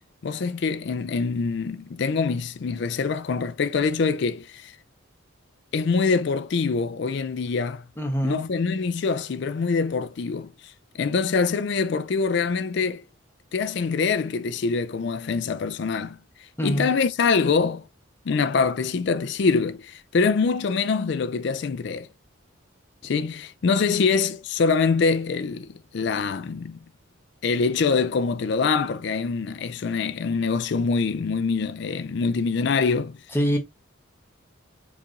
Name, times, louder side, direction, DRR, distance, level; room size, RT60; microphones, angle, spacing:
voice 1, 0.2-4.8 5.7-7.8 8.2-13.0 13.5-16.2 16.6-17.9 18.3-22.1 23.0-26.8 27.4-33.2, left 4 dB, 55° left, 0.4 m, -24 dB
voice 2, 8.0-8.4 16.6-16.9 33.3-33.6, equal, 10° left, 1.0 m, -24 dB
4.7 x 4.0 x 2.5 m
head